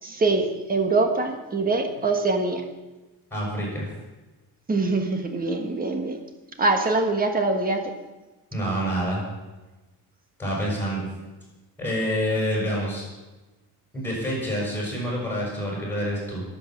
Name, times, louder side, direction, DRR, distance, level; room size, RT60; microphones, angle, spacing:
voice 1, 0.0-2.6 4.7-6.2 6.6-7.9, right 3 dB, 25° right, 5 dB, 1.4 m, -24 dB
voice 2, 3.3-3.9 8.5-9.2 10.4-11.0 11.8-13.1 13.9-16.4, equal, 5° left, -4 dB, 6.6 m, -27 dB
22.5 x 8.3 x 6.0 m, 1.1 s
cardioid pair, 175°, 38 cm